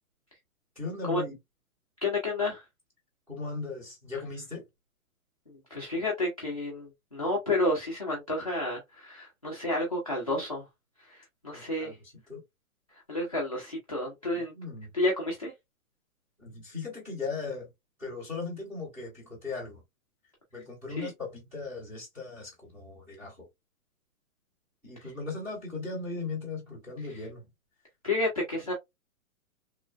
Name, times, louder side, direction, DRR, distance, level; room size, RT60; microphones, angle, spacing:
voice 1, 0.7-1.4 3.3-4.6 11.5-12.4 14.5-14.9 16.4-17.7 18.0-19.8 20.5-23.5 24.8-27.5, left 4 dB, 5° right, 0.8 m, -38 dB
voice 2, 2.0-2.6 5.5-10.6 11.1-11.9 13.1-14.5 14.9-15.5 20.9-21.1 28.0-28.7, left 2 dB, 30° left, 0.3 m, -30 dB
3.1 x 2.1 x 2.3 m
hypercardioid pair, 175°, 42 cm